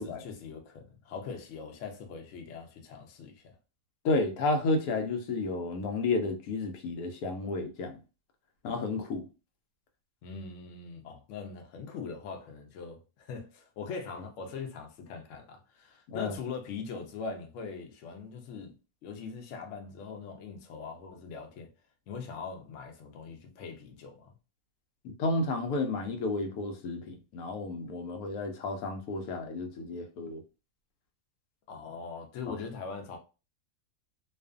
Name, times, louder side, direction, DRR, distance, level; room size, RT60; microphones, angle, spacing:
voice 1, 0.0-3.6 10.2-18.7 19.0-21.7 22.1-24.3 31.7-33.2, left 5 dB, 65° left, 0.9 m, -41 dB
voice 2, 4.0-8.0 8.6-9.2 16.1-16.4 25.2-30.4 32.5-32.6, left 3 dB, 85° left, 1.1 m, -31 dB
2.4 x 2.4 x 2.4 m
omnidirectional pair, 1.5 m